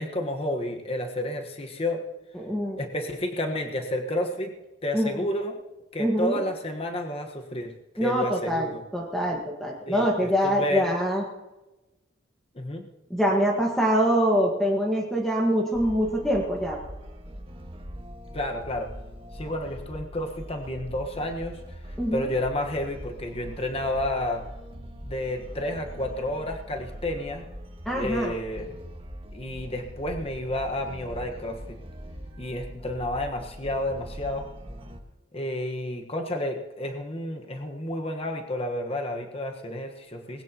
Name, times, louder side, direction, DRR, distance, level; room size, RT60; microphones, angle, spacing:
voice 1, 0.0-2.0 2.8-4.5 4.8-5.6 5.9-8.8 9.9-10.8 12.5-12.9 18.3-18.9 19.3-21.6 21.9-24.4 25.0-27.4 27.9-28.7 29.3-31.8 32.4-34.5 35.3-40.4, left 1 dB, 30° left, 3 dB, 1.4 m, -31 dB
voice 2, 2.3-2.8 4.9-5.3 6.0-6.4 8.0-11.2 13.1-16.8 22.0-22.3 27.8-28.3, equal, ahead, -2 dB, 1.6 m, -24 dB
sound 1, 15.7-35.0, equal, 30° right, 1.6 m, -42 dB
20.5 x 17.5 x 3.0 m, 1.0 s
head